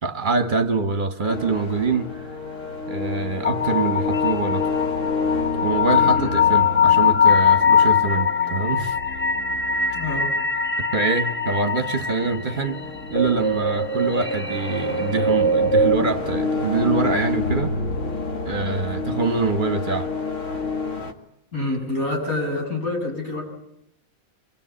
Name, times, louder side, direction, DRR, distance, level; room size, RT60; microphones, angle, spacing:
voice 1, 0.0-2.1 2.9-4.7 5.6-9.0 10.8-12.8 13.1-17.8 18.4-20.1, right 4 dB, 35° right, 1.2 m, -24 dB
sound 1, 1.3-21.1, left 3 dB, 55° left, 2.1 m, -29 dB
sound 2, 3.4-16.0, left 5 dB, 10° left, 0.9 m, -21 dB
voice 2, 6.0-6.3 9.9-10.3 21.5-23.4, left 2 dB, 75° left, 8.5 m, -27 dB
25.0 x 21.0 x 8.6 m
omnidirectional pair, 1.5 m